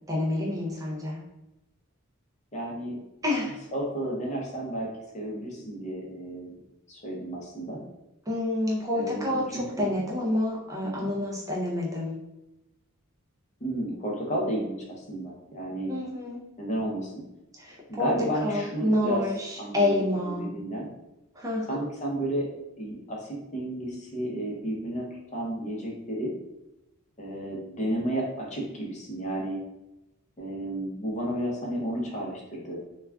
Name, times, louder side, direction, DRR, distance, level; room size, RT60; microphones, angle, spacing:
voice 1, 0.1-1.2 3.2-3.6 8.3-9.5 9.8-12.2 15.9-16.4 17.6-18.1 18.4-20.5 21.4-21.8, left 1 dB, 15° right, -4 dB, 0.4 m, -28 dB
voice 2, 2.5-3.0 3.7-4.9 5.1-6.6 6.9-7.8 8.9-9.9 10.8-11.1 13.6-15.9 16.6-17.1 17.9-19.2 19.6-20.9 21.7-22.5 22.8-26.3 27.2-29.6 30.4-32.8, right 1 dB, 35° left, -2 dB, 0.7 m, -32 dB
2.3 x 2.3 x 3.3 m, 0.93 s
head